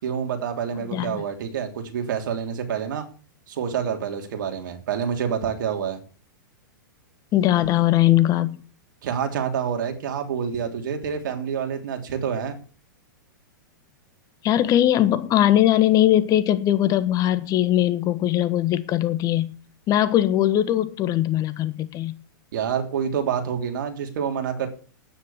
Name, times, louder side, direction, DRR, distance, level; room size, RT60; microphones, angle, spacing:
voice 1, 0.0-3.1 3.5-6.0 9.0-12.6 22.5-24.7, right 7 dB, 65° right, 3.3 m, -27 dB
voice 2, 0.9-1.2 7.3-8.6 14.4-19.5 19.9-22.2, left 12 dB, 35° left, 1.3 m, -20 dB
9.7 x 9.5 x 8.6 m
hypercardioid pair, 120°, 11 cm